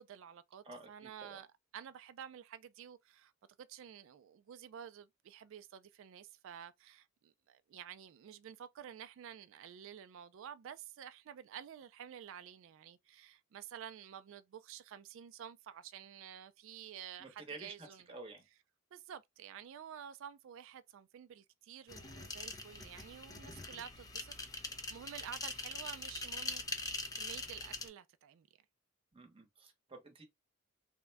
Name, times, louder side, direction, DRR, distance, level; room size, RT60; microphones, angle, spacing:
voice 1, 0.0-1.5 1.7-3.3 3.6-18.0 18.9-26.6 27.1-28.5, right 9 dB, 60° right, 0.3 m, -51 dB
voice 2, 0.6-1.4 17.2-18.5 29.1-30.2, right 3 dB, 25° right, 0.9 m, -51 dB
sound 1, 21.9-27.9, left 3 dB, 15° left, 0.4 m, -43 dB
3.5 x 2.1 x 3.3 m
head